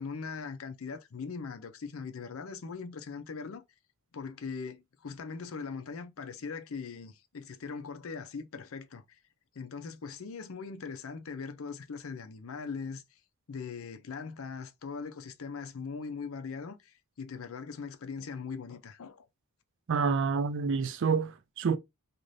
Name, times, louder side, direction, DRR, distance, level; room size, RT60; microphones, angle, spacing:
voice 1, 0.0-3.6 4.1-9.2 9.5-13.2 13.5-19.3, left 5 dB, 70° left, 0.5 m, -40 dB
voice 2, 19.9-21.8, right 5 dB, 55° right, 0.4 m, -28 dB
2.6 x 2.4 x 3.2 m
head